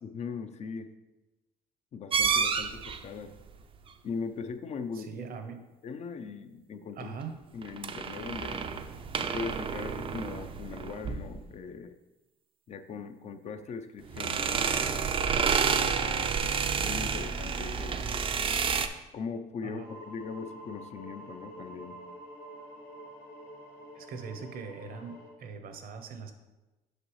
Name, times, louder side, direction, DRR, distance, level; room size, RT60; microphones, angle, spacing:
voice 1, 0.0-0.9 1.9-3.3 4.0-5.2 5.8-7.1 7.5-8.6 9.2-12.0 12.7-14.8 16.0-18.1 19.1-22.0, left 5 dB, 40° left, 9 dB, 0.5 m, -40 dB
sound 1, 2.1-3.0 7.6-11.4 14.1-18.9, right 6 dB, 30° right, 0.4 m, -29 dB
voice 2, 4.9-5.6 7.0-7.4 19.6-19.9 23.9-26.3, right 5 dB, 60° right, 8 dB, 0.8 m, -41 dB
sound 2, 19.8-25.3, equal, 90° left, 2.2 m, -47 dB
6.5 x 5.5 x 3.1 m, 1.1 s
cardioid pair, 110°, 17 cm